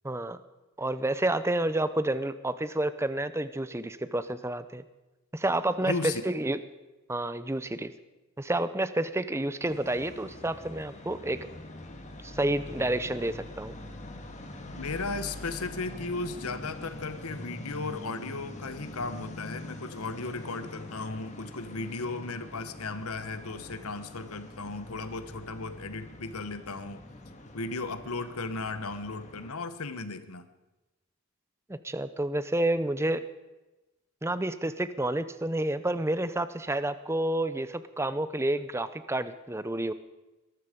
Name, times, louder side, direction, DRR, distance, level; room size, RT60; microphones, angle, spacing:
voice 1, 0.0-0.4 0.8-4.8 5.3-6.6 7.1-7.9 8.4-11.5 12.2-13.8 31.7-33.2 34.2-39.9, right 1 dB, 10° right, 13 dB, 0.6 m, -29 dB
voice 2, 5.8-6.2 14.7-27.0 27.5-30.5, left 3 dB, 80° left, 11 dB, 1.2 m, -35 dB
sound 1, 9.6-29.5, left 1 dB, 30° left, 1.8 m, -44 dB
22.0 x 12.5 x 5.2 m, 1.1 s
head